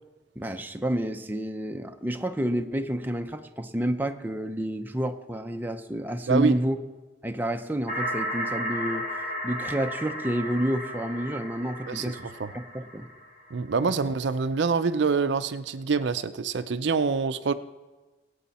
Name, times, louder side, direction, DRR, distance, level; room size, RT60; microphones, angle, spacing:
voice 1, 0.4-6.8 7.2-9.1 9.4-12.2 12.5-13.1, right 1 dB, 10° right, 5 dB, 0.5 m, -29 dB
voice 2, 6.3-6.6 11.9-12.5 13.5-17.5, right 5 dB, 70° right, 12 dB, 0.5 m, -26 dB
sound 1, 7.9-13.6, equal, 45° left, 2.9 m, -34 dB
22.0 x 8.4 x 4.2 m, 1.2 s
head